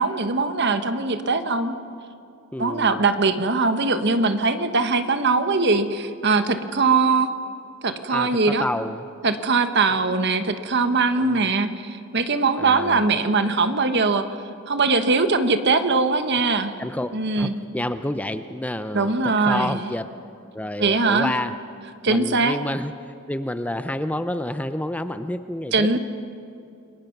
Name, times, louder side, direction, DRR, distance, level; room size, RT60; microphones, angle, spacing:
voice 1, 0.0-1.8 2.6-7.3 7.8-8.7 9.2-14.3 14.7-16.7 17.1-17.5 18.9-19.8 20.8-21.3 22.0-22.6 25.7-26.0, right 3 dB, 55° right, 9 dB, 1.3 m, -21 dB
voice 2, 2.5-3.0 8.1-9.1 11.1-11.5 12.6-13.2 16.8-20.1 20.5-21.6 22.0-26.0, left 1 dB, 5° left, 10 dB, 0.6 m, -29 dB
29.0 x 21.5 x 5.9 m, 2.6 s
head